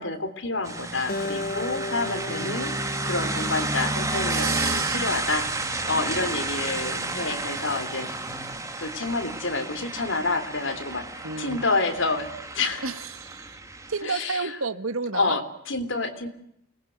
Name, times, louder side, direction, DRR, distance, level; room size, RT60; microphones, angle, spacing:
voice 1, 0.0-2.7 3.0-5.5 5.9-8.1 8.8-11.1 11.4-12.3 12.5-12.9 14.0-14.6 15.1-16.3, left 3 dB, 60° left, 7 dB, 3.3 m, -28 dB
sound 1, 0.6-14.0, right 2 dB, 15° right, 2.1 m, -31 dB
Acoustic guitar, 1.1-4.4, left 2 dB, 40° left, 1.0 m, -35 dB
sound 2, 2.0-8.6, left 1 dB, ahead, 3.7 m, -47 dB
voice 2, 2.3-2.6 4.3-5.0 11.2-11.6 12.8-13.6 13.9-15.4, right 5 dB, 80° right, 11 dB, 1.6 m, -31 dB
28.5 x 20.5 x 8.1 m, 0.75 s
head